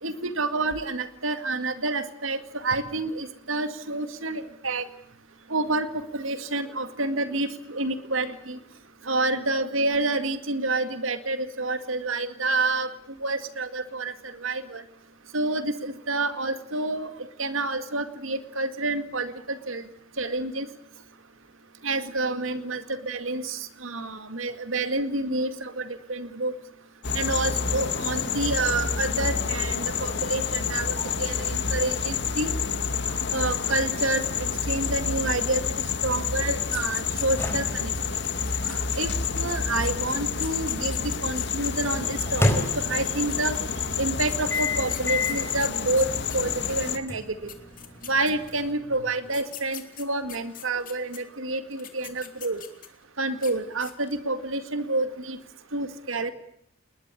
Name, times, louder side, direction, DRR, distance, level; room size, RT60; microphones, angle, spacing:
voice 1, 0.0-4.9 5.5-5.9 6.1-8.6 9.1-12.9 13.2-14.1 14.4-14.8 15.3-17.1 17.4-19.8 20.2-20.7 21.8-26.5 27.1-32.5 33.3-34.2 34.7-37.9 38.6-41.0 41.2-42.5 42.8-43.6 44.0-46.1 46.3-47.5 48.1-52.6 53.2-55.4 55.7-56.3, right 2 dB, 85° right, 10 dB, 2.1 m, -28 dB
sound 1, 27.0-47.0, left 6 dB, 60° left, 1.9 m, -28 dB
sound 2, 36.6-37.7 37.9-41.7 42.7-43.6 44.3-46.7 47.2-47.3 47.5-48.7 49.3-51.2 51.7-53.0 53.3-53.5 53.8-54.2, left 11 dB, 45° left, 2.8 m, -44 dB
sound 3, 37.3-41.0 42.0-43.4 44.5-45.5 46.0-46.2 47.1-48.7, left 2 dB, 15° left, 4.3 m, -32 dB
20.5 x 20.5 x 9.8 m, 0.75 s
head